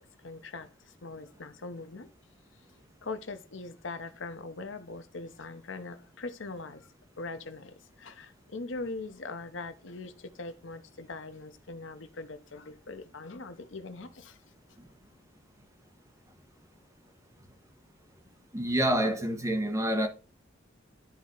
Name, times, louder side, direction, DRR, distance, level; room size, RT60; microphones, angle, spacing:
voice 1, 0.2-2.1 3.0-6.9 7.2-14.4, left 3 dB, 70° left, 0.8 m, -41 dB
voice 2, 18.5-20.1, right 1 dB, 15° right, 1.2 m, -27 dB
12.0 x 4.2 x 3.8 m
head